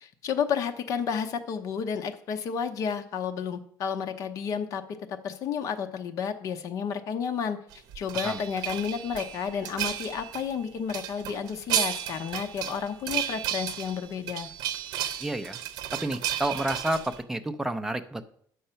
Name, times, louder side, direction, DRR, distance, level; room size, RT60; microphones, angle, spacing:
voice 1, 0.0-4.8 5.1-7.6 7.9-14.5, left 7 dB, 50° left, 7 dB, 0.8 m, -31 dB
sound 1, 7.7-10.5 10.9-17.2, right 11 dB, 65° right, 0.8 m, -33 dB
voice 2, 15.2-15.6 16.0-18.2, right 1 dB, 5° right, 7 dB, 0.5 m, -30 dB
8.9 x 6.4 x 5.7 m, 0.63 s
cardioid pair, 165°, 7 cm